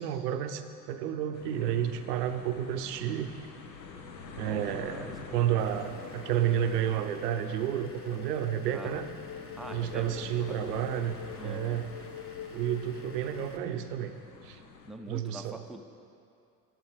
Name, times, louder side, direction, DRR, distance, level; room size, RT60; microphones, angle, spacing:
voice 1, 0.0-3.3 4.4-9.1 9.7-11.9 12.5-14.6 15.1-15.6, right 10 dB, 70° right, 8 dB, 0.8 m, -31 dB
sound 1, 1.3-14.9, left 4 dB, 80° left, 0.9 m, -47 dB
sound 2, 3.6-13.5, left 10 dB, 50° left, 0.5 m, -46 dB
voice 2, 4.4-5.2 8.7-9.0 9.6-10.8 11.4-11.8 14.9-15.8, right 1 dB, ahead, 4 dB, 0.5 m, -44 dB
Vehicle / Engine, 5.6-13.6, left 3 dB, 25° left, 1.0 m, -52 dB
11.0 x 7.9 x 5.0 m, 2.5 s
figure-of-eight pair, 60°, 50 cm